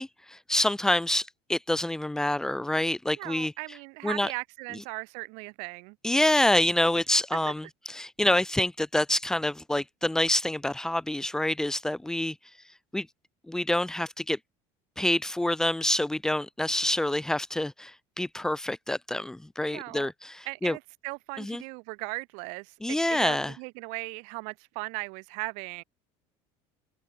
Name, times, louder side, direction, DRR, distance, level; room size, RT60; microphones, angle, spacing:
voice 1, 0.0-3.8 4.0-4.3 6.0-12.3 12.9-13.1 13.5-14.4 15.0-20.8 21.4-21.6 22.8-23.5, left 1 dB, 5° left, 1.6 m, -27 dB
voice 2, 3.2-5.9 7.4-7.5 19.7-20.1 20.4-25.8, right 32 dB, 65° right, 5.1 m, -38 dB
open air
cardioid pair, 175°, 13 cm